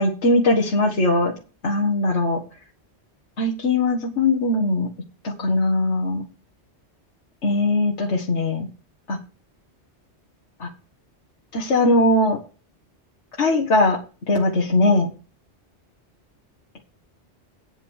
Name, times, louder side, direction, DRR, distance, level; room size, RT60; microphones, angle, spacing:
voice 1, 0.0-1.3 1.6-2.4 3.4-4.9 5.2-6.2 7.4-8.7 9.1-9.2 10.6-10.7 11.5-12.4 13.4-14.0 14.3-15.1, left 2 dB, 85° left, -2 dB, 2.1 m, -20 dB
9.2 x 6.9 x 6.5 m, 0.34 s
omnidirectional pair, 1.2 m